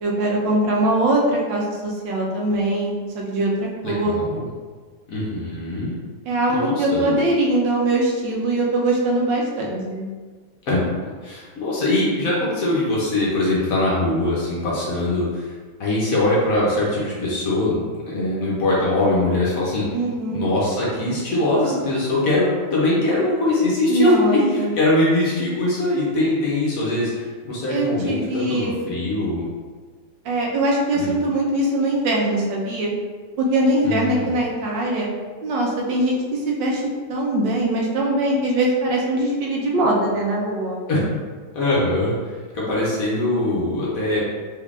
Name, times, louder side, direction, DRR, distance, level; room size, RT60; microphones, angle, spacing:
voice 1, 0.0-4.2 6.3-10.1 19.9-20.4 23.9-24.7 27.7-28.8 30.2-32.9 33.4-35.1 35.4-36.8 37.1-40.8, right 1 dB, 90° right, -2 dB, 1.4 m, -22 dB
voice 2, 3.8-4.5 5.1-5.9 6.5-7.1 10.6-10.8 11.2-15.5 15.8-17.8 18.1-19.9 20.3-29.5 30.9-31.1 33.8-34.4 40.9-41.0 41.5-44.2, left 2 dB, 60° left, -6 dB, 1.1 m, -22 dB
3.6 x 3.2 x 2.4 m, 1.5 s
omnidirectional pair, 1.9 m